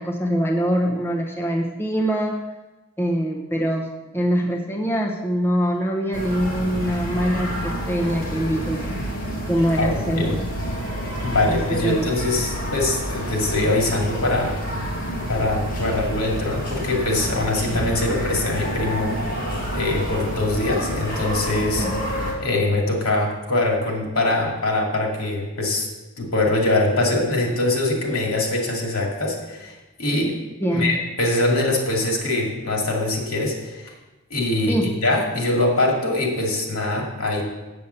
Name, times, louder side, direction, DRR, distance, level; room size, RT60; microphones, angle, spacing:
voice 1, 0.0-2.4 3.0-3.9 4.1-9.0 9.5-10.4 11.5-11.6 11.8-12.1 21.8-22.0 30.6-30.9 34.7-34.9, equal, 10° left, -1 dB, 0.9 m, -23 dB
sound 1, 6.1-22.3, equal, 40° left, 2.0 m, -28 dB
voice 2, 9.8-10.4 11.2-14.6 15.3-19.2 19.7-21.9 22.4-25.9 26.2-29.7 30.0-30.4 30.7-33.9 34.3-37.4, left 2 dB, 80° left, 0 dB, 2.4 m, -23 dB
7.2 x 7.1 x 8.1 m, 1.1 s
head